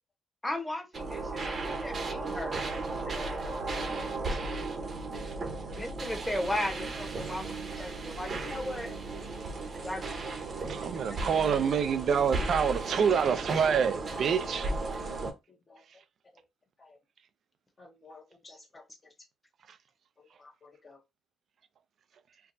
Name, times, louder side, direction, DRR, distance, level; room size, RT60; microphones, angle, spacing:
voice 1, 0.4-2.7 5.8-8.9 9.8-10.3, left 1 dB, 10° left, 1.0 m, -36 dB
sound 1, 0.9-15.3, right 3 dB, 45° right, 0.9 m, -35 dB
voice 2, 2.9-3.3 3.7-4.4 5.1-5.2 5.7-5.8 6.8-6.9 7.9-8.0 8.5-8.7 9.4-9.5 10.1-10.2 10.8-10.9 14.8-15.2 15.7-15.8 16.8-17.0 17.8-18.8 20.2-21.0, left 4 dB, 35° left, 1.0 m, -53 dB
voice 3, 10.7-14.7, right 7 dB, 60° right, 0.5 m, -27 dB
4.6 x 2.3 x 2.6 m
cardioid pair, 90°, 0 cm